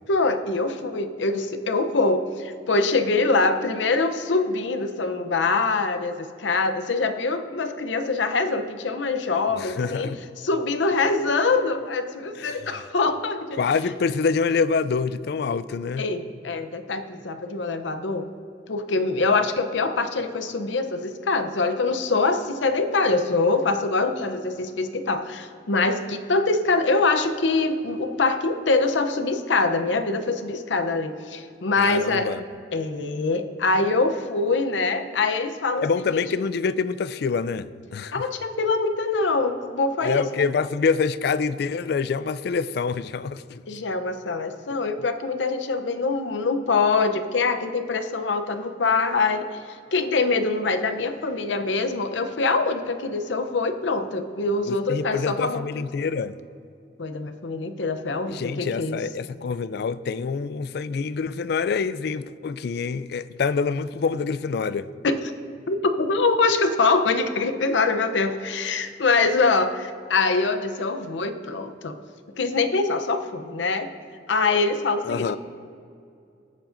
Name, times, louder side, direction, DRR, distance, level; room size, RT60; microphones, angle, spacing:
voice 1, 0.1-10.1 10.4-13.6 16.0-18.3 18.7-32.3 32.7-36.2 38.1-40.4 43.7-55.7 57.0-59.0 65.0-65.2 65.7-72.0 72.4-73.9 74.3-75.4, left 3 dB, 90° left, 0.7 m, -24 dB
voice 2, 9.6-10.2 12.4-12.6 13.6-16.0 31.8-32.4 35.8-38.2 40.0-43.6 54.7-56.4 58.3-64.9 75.0-75.4, left 5 dB, 60° left, 0.3 m, -26 dB
21.5 x 7.5 x 2.6 m
head